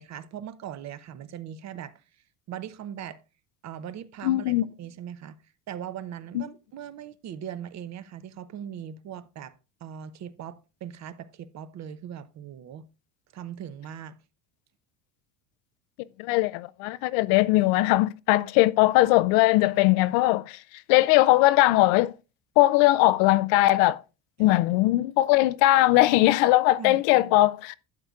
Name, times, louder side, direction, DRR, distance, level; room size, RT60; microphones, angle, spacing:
voice 1, 0.0-1.9 2.5-3.2 3.6-4.5 4.8-5.4 5.7-9.5 9.8-12.8 13.3-14.2 24.4-24.6 26.8-27.3, right 9 dB, 40° right, 0.7 m, -39 dB
voice 2, 4.2-4.7 6.3-6.4 16.2-20.6 20.9-22.1 22.6-24.0 24.4-27.8, left 17 dB, 75° left, 0.6 m, -20 dB
12.0 x 8.0 x 2.4 m
supercardioid pair, 115°, 41 cm